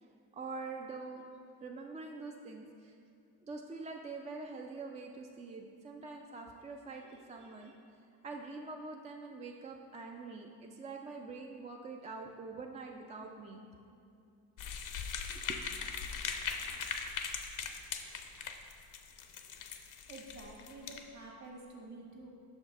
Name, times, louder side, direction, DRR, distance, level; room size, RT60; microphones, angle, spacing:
voice 1, 0.0-1.3 1.6-2.9 3.4-7.8 8.2-13.6 15.3-15.6, right 3 dB, 20° right, 2 dB, 0.3 m, -45 dB
sound 1, 14.6-21.1, left 6 dB, 50° left, 0.6 m, -40 dB
voice 2, 20.1-22.3, right 2 dB, 45° right, -1 dB, 1.4 m, -49 dB
6.0 x 5.4 x 3.6 m, 2.5 s
cardioid pair, 90°, 40 cm